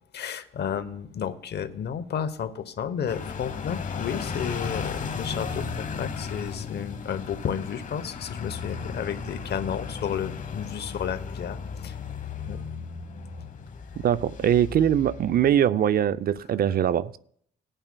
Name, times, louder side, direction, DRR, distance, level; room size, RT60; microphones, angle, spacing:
voice 1, 0.1-11.6 11.8-12.0 12.4-12.6, left 8 dB, 60° left, 0.9 m, -32 dB
sound 1, 3.1-15.6, left 5 dB, 40° left, 0.9 m, -35 dB
voice 2, 14.0-17.2, right 10 dB, 50° right, 0.4 m, -22 dB
19.0 x 8.9 x 2.2 m
cardioid pair, 90°, 20 cm